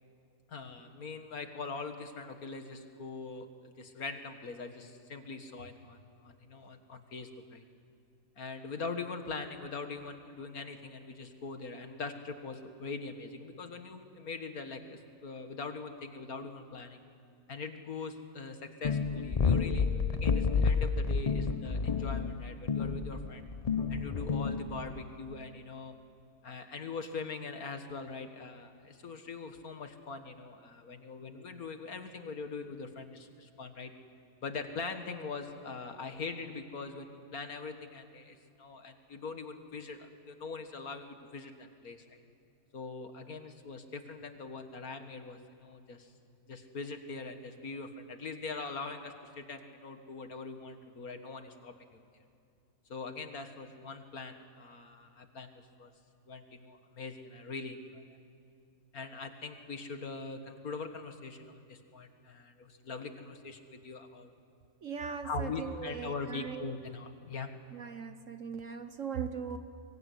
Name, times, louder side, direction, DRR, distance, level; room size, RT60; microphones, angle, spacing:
voice 1, 0.5-3.5 3.8-7.6 8.4-17.0 17.5-23.5 23.9-26.0 26.4-33.9 34.4-42.2 42.7-46.1 46.5-52.1 52.9-55.5 55.8-55.9 56.3-58.0 58.9-64.3 65.2-67.5, left 4 dB, 55° left, 7 dB, 2.1 m, -42 dB
sound 1, 18.8-25.0, left 5 dB, 80° left, 0.3 m, -30 dB
voice 2, 64.8-66.8 67.7-69.6, right 6 dB, 55° right, 9 dB, 1.1 m, -39 dB
25.5 x 22.0 x 9.7 m, 2.4 s
omnidirectional pair, 1.9 m